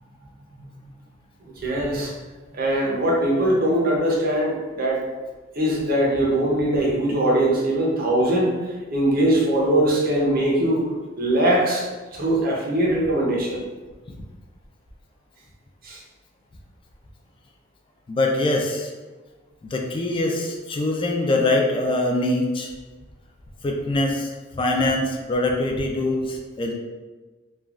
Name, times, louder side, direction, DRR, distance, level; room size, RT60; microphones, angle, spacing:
voice 1, 1.4-2.1 2.5-5.0 5.6-8.5 8.9-10.9 11.2-11.9 12.1-13.6 15.8-16.0, right 1 dB, 50° right, -3 dB, 0.7 m, -21 dB
voice 2, 18.1-18.9 19.7-22.7 23.6-26.7, left 2 dB, 25° left, 1 dB, 0.3 m, -23 dB
3.2 x 2.3 x 2.3 m, 1.3 s
head